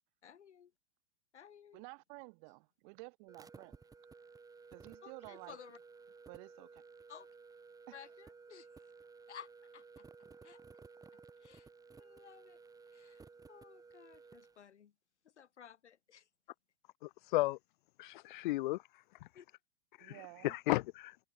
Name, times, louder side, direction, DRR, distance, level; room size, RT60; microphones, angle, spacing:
voice 1, 0.2-0.7 1.3-1.8 5.0-5.8 7.1-7.3 7.9-8.8 9.3-10.1 10.4-10.6 11.4-11.7 12.0-12.6 12.9-14.9 15.2-16.3 19.3-19.5, left 8 dB, 75° left, 5.7 m, -56 dB
voice 2, 1.7-3.8 4.7-5.6 6.3-6.8 7.9-8.0 20.0-20.6, right 37 dB, 45° right, 2.7 m, -52 dB
sound 1, 3.3-14.6, right 4 dB, 10° right, 1.8 m, -56 dB
voice 3, 17.0-17.6 18.0-18.8 19.2-19.3 20.0-21.2, left 18 dB, 50° left, 0.5 m, -34 dB
hypercardioid pair, 115°, 34 cm